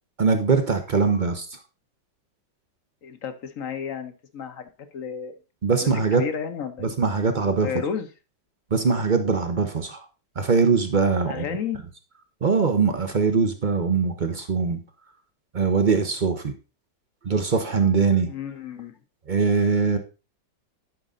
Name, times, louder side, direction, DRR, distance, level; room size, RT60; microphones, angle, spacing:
voice 1, 0.2-1.5 5.6-6.2 6.8-7.7 8.7-10.0 10.4-11.4 12.4-14.8 15.5-16.5 17.2-18.3 19.3-20.0, right 5 dB, 40° right, 7 dB, 0.7 m, -22 dB
voice 2, 3.0-5.4 5.8-6.9 7.6-8.1 11.3-11.8 18.3-19.0, left 7 dB, 55° left, 9 dB, 1.2 m, -32 dB
11.0 x 5.3 x 3.8 m, 0.32 s
omnidirectional pair, 1.9 m